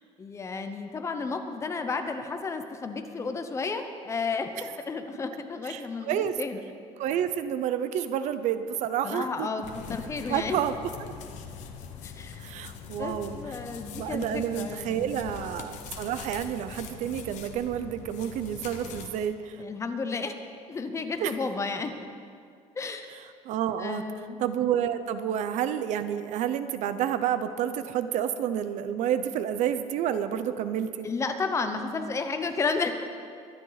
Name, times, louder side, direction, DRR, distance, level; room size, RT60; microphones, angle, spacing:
voice 1, 0.2-4.5 4.8-6.6 9.0-10.6 12.0-12.4 13.0-15.4 19.6-20.3 20.7-21.9 22.8-23.1 23.8-24.4 31.0-32.9, left 4 dB, 20° left, 7 dB, 0.8 m, -32 dB
voice 2, 5.7-6.4 7.0-9.5 10.3-11.1 12.4-13.4 14.0-19.6 21.2-21.3 23.5-24.0 24.4-31.1, right 9 dB, 70° right, 11 dB, 0.7 m, -29 dB
sound 1, 9.6-19.1, left 7 dB, 70° left, 1.3 m, -42 dB
23.0 x 10.5 x 4.1 m, 2.3 s
cardioid pair, 165°, 13 cm